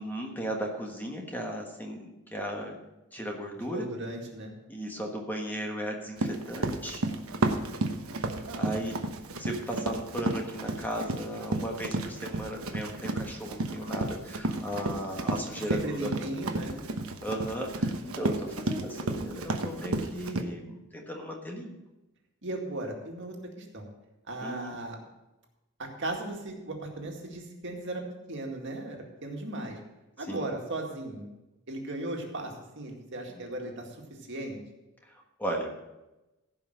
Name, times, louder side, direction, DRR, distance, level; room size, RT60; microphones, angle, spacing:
voice 1, 0.0-2.8 3.1-3.9 4.7-7.0 8.5-9.0 9.4-16.3 17.2-21.8 24.4-24.8 30.3-30.4 35.4-35.7, equal, 10° left, 1 dB, 1.3 m, -36 dB
voice 2, 3.5-4.5 8.1-8.7 15.7-16.8 22.4-23.9 24.3-25.0 25.8-29.8 30.2-31.3 31.7-34.0 34.3-34.6, right 2 dB, 60° right, 1 dB, 2.1 m, -37 dB
Run, 6.2-20.4, right 2 dB, 75° right, 1.1 m, -32 dB
15.5 x 5.7 x 6.4 m, 1.0 s
head